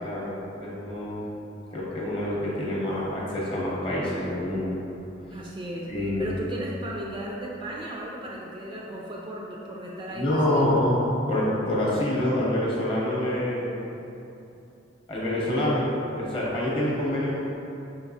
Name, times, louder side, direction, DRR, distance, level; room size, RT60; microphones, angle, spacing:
voice 1, 0.0-1.3 1.7-4.8 5.9-6.3 10.1-13.8 15.1-15.9 16.1-17.4, left 1 dB, 30° left, -6 dB, 0.8 m, -26 dB
voice 2, 5.3-5.9 6.2-10.7, right 1 dB, 25° right, -3 dB, 0.3 m, -35 dB
5.1 x 2.7 x 2.7 m, 2.9 s
head